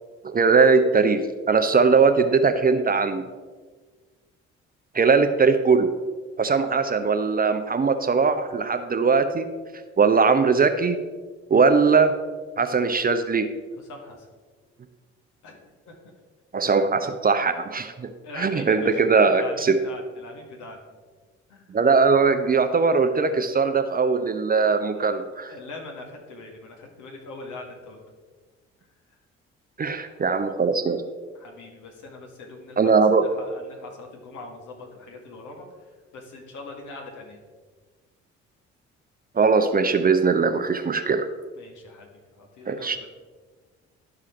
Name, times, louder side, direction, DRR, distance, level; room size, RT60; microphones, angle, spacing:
voice 1, 0.2-3.2 4.9-5.9 6.4-9.5 10.0-11.0 11.5-12.1 12.6-13.5 16.5-19.8 21.7-25.5 29.8-31.0 32.8-33.2 39.4-41.3 42.7-43.0, right 4 dB, 25° right, 8 dB, 0.7 m, -20 dB
voice 2, 13.8-14.3 15.4-16.0 18.2-20.8 21.5-21.7 23.3-23.5 24.9-25.2 25.5-28.0 30.1-30.2 31.4-35.7 36.1-37.4 41.6-42.1 42.4-43.1, left 3 dB, 60° left, 1 dB, 1.9 m, -42 dB
11.5 x 4.9 x 4.4 m, 1.4 s
hypercardioid pair, 50°, 34 cm